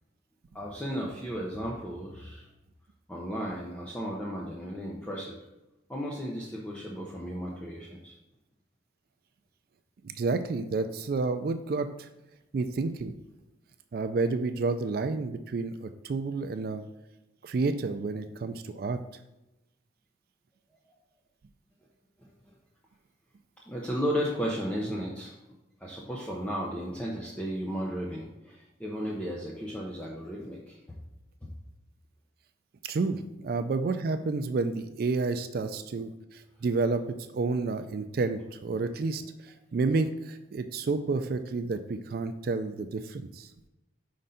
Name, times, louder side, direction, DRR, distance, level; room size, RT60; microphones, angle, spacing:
voice 1, 0.5-2.5 3.1-5.4 5.9-8.1 23.7-25.3 25.8-31.0 31.4-31.5, equal, 5° left, -3 dB, 0.6 m, -34 dB
voice 2, 10.0-12.1 12.5-13.1 13.9-16.8 17.4-19.0 32.8-43.5, right 3 dB, 50° right, 9 dB, 0.3 m, -30 dB
5.3 x 3.8 x 5.5 m, 0.95 s
head